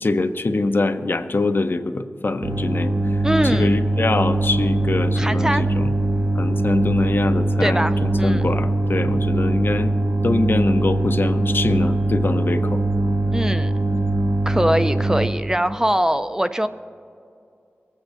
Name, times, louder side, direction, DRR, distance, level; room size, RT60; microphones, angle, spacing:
voice 1, 0.0-2.9 3.5-5.9 6.4-9.9 10.2-12.8, left 2 dB, 55° left, 9 dB, 0.6 m, -23 dB
sound 1, 2.4-15.3, right 2 dB, 50° right, 0.9 m, -21 dB
voice 2, 3.2-3.7 5.2-5.7 7.6-8.5 13.3-13.7 14.5-16.7, equal, 15° right, 11 dB, 0.4 m, -22 dB
24.0 x 8.4 x 2.6 m, 2.4 s
wide cardioid pair, 55°, 4 cm